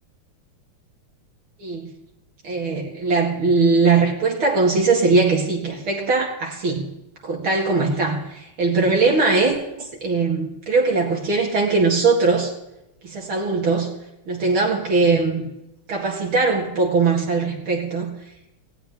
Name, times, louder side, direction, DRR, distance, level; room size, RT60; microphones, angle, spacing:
voice 1, 1.6-1.9 2.4-6.9 7.2-9.6 10.0-12.5 13.0-13.9 14.3-15.5 15.9-18.1, right 3 dB, 70° right, 0 dB, 3.1 m, -20 dB
19.0 x 16.0 x 3.7 m, 0.87 s
omnidirectional pair, 2.4 m